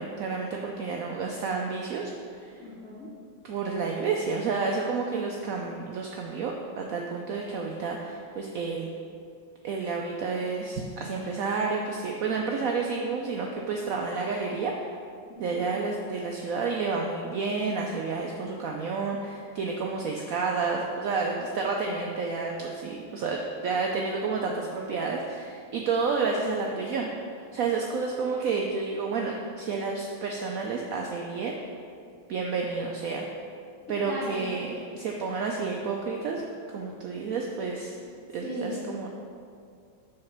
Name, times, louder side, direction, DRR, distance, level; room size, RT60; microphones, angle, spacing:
voice 1, 0.0-2.5 3.4-8.9 9.6-14.7 15.4-27.1 27.5-31.6 32.3-33.3 33.9-36.5 36.7-38.0 38.3-39.1, right 4 dB, 85° right, 0 dB, 0.7 m, -30 dB
voice 2, 2.6-3.1 15.3-15.7 34.0-34.4 38.4-38.8, equal, 45° left, -8 dB, 2.4 m, -37 dB
6.5 x 4.0 x 5.8 m, 2.3 s
omnidirectional pair, 2.1 m